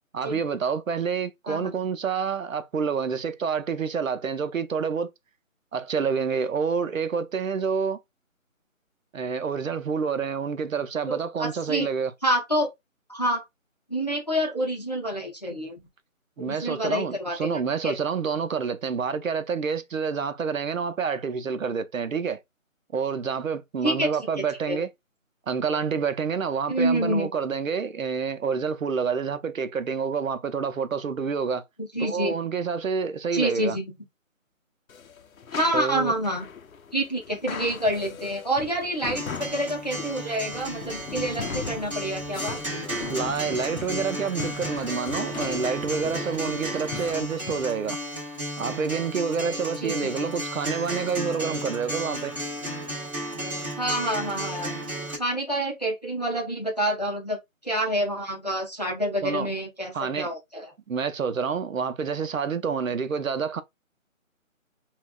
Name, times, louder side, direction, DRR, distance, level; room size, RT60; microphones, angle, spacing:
voice 1, 0.1-5.1 5.7-8.0 9.1-12.1 16.4-22.4 22.9-24.9 25.5-31.6 32.0-33.8 35.7-36.1 43.1-48.0 48.6-52.3 59.2-59.5 59.9-60.3 60.9-63.6, right 6 dB, 70° right, 0.7 m, -28 dB
voice 2, 11.1-11.9 12.2-12.7 13.1-13.4 13.9-15.8 16.4-17.9 23.8-24.1 24.7-24.8 26.7-27.3 31.8-32.3 33.3-33.8 35.5-36.5 36.9-42.6 49.8-50.3 53.8-54.7 55.2-57.4 57.6-60.7, right 1 dB, 30° left, 0.6 m, -27 dB
sound 1, 34.9-47.7, left 6 dB, 75° left, 0.7 m, -39 dB
Acoustic guitar, 39.1-55.2, right 1 dB, 25° right, 1.5 m, -34 dB
5.6 x 2.3 x 2.2 m
figure-of-eight pair, 175°, 41 cm